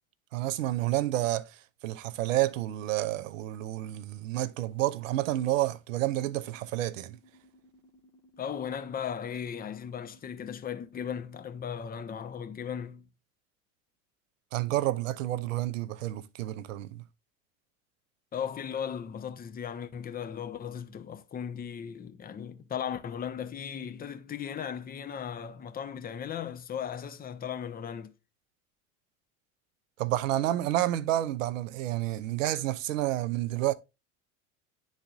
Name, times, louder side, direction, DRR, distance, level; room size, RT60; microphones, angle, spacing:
voice 1, 0.3-1.5 1.8-7.2 14.5-17.0 30.0-33.7, right 14 dB, 65° right, 0.7 m, -29 dB
sound 1, 6.0-11.0, left 1 dB, 45° left, 1.6 m, -61 dB
voice 2, 8.4-13.1 18.3-28.1, left 8 dB, 20° left, 0.8 m, -37 dB
11.0 x 4.1 x 2.4 m
figure-of-eight pair, 75°, 42 cm